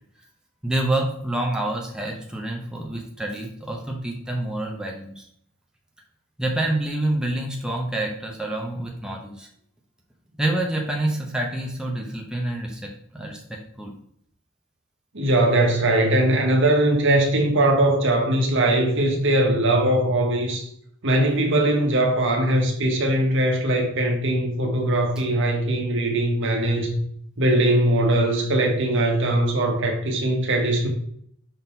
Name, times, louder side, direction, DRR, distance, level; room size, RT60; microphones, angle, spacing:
voice 1, 0.6-5.3 6.4-9.5 10.4-13.9, right 1 dB, 5° right, 0.8 m, -27 dB
voice 2, 15.1-20.7 21.0-27.0 27.4-30.9, right 1 dB, 65° right, 1.3 m, -20 dB
5.9 x 3.7 x 4.5 m
head